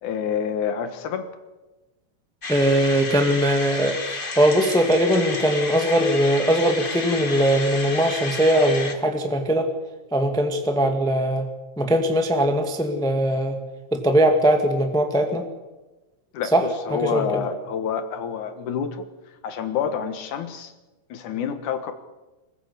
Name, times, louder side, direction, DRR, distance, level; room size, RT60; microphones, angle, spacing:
voice 1, 0.0-1.3 16.3-19.1 19.4-20.7 21.1-21.9, left 7 dB, 70° left, 9 dB, 2.8 m, -28 dB
sound 1, 2.4-8.9, left 3 dB, 35° left, 0.8 m, -31 dB
voice 2, 2.5-9.7 10.1-11.5 11.8-13.6 13.9-15.4 16.5-16.6 16.9-17.4, right 1 dB, ahead, 5 dB, 1.2 m, -20 dB
24.5 x 15.5 x 8.3 m, 1.1 s
omnidirectional pair, 3.8 m